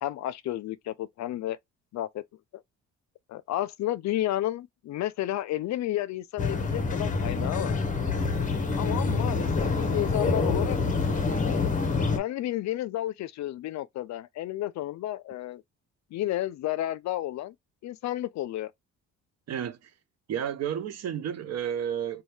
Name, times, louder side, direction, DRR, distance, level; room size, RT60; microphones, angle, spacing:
voice 1, 0.0-1.6 1.9-2.2 3.3-7.8 8.8-10.8 11.4-11.7 12.2-15.6 16.1-17.5 17.8-18.7, left 14 dB, 65° left, 0.5 m, -31 dB
sound 1, 6.4-12.2, left 4 dB, 25° left, 0.7 m, -26 dB
voice 2, 19.5-19.9 20.3-22.2, right 9 dB, 60° right, 0.6 m, -31 dB
2.7 x 2.3 x 3.2 m
cardioid pair, 90°, 30 cm